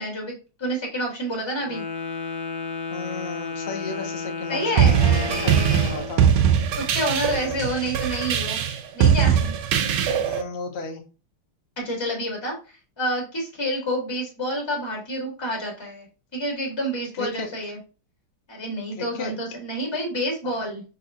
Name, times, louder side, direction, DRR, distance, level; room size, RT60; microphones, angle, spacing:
voice 1, 0.0-1.8 4.5-6.0 6.7-8.6 8.9-9.5 11.8-12.5 13.0-16.1 16.3-17.8 18.5-20.8, equal, 15° left, -2 dB, 1.5 m, -28 dB
Wind instrument woodwind instrument, 1.6-6.2, left 4 dB, 60° left, 1.1 m, -32 dB
voice 2, 2.9-6.3 7.2-7.7 10.2-11.0 17.2-17.5 19.0-19.3, left 3 dB, 75° left, 3 dB, 0.5 m, -34 dB
sound 1, 4.8-10.4, right 8 dB, 75° right, 1.4 m, -21 dB
5.3 x 3.2 x 2.7 m, 0.33 s
omnidirectional pair, 2.3 m